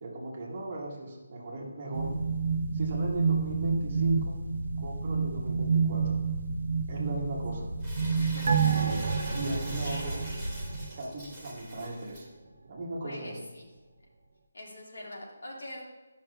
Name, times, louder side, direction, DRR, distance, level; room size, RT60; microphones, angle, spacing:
voice 1, 0.0-2.1 2.7-4.3 4.8-6.2 6.9-7.7 8.6-9.0 9.3-10.2 10.9-12.3 12.6-13.4, right 2 dB, 25° right, -3 dB, 1.1 m, -38 dB
sound 1, 1.9-10.8, right 4 dB, 80° right, 0.7 m, -30 dB
Crumpling crinkling, 7.8-12.2, equal, 5° left, 0.9 m, -43 dB
voice 2, 8.2-9.0 9.8-10.4 13.0-13.7 14.5-15.8, left 1 dB, 90° left, -1 dB, 1.8 m, -44 dB
sound 2, 8.5-11.4 11.7-11.8, right 7 dB, 45° right, 0.5 m, -30 dB
9.9 x 5.7 x 2.3 m, 1.2 s
hypercardioid pair, 175°, 0 cm